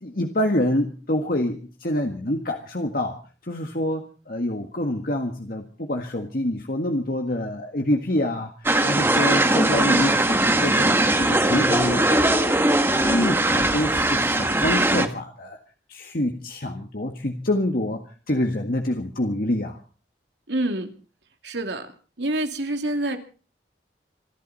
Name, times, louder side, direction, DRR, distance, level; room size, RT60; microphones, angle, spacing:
voice 1, 0.0-3.2 3.4-8.5 8.8-15.6 15.9-18.0 18.3-19.8, left 1 dB, 55° left, 3 dB, 1.7 m, -26 dB
sound 1, 8.6-15.1, right 1 dB, 15° right, 1.4 m, -20 dB
voice 2, 20.5-20.9 21.4-21.9 22.2-23.2, right 1 dB, 85° right, 6 dB, 2.7 m, -26 dB
27.0 x 12.0 x 4.2 m, 0.37 s
head